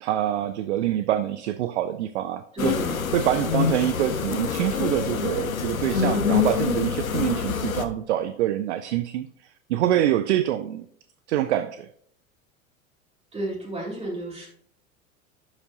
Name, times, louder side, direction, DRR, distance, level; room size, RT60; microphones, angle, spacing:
voice 1, 0.0-2.8 3.1-10.9 11.3-11.9, right 12 dB, 55° right, 12 dB, 0.5 m, -25 dB
voice 2, 2.5-3.0 13.3-14.5, right 2 dB, 15° right, -4 dB, 3.2 m, -31 dB
sound 1, 2.6-7.8, left 7 dB, 80° left, 0.8 m, -26 dB
11.0 x 4.9 x 2.8 m, 0.65 s
figure-of-eight pair, 85°, 41 cm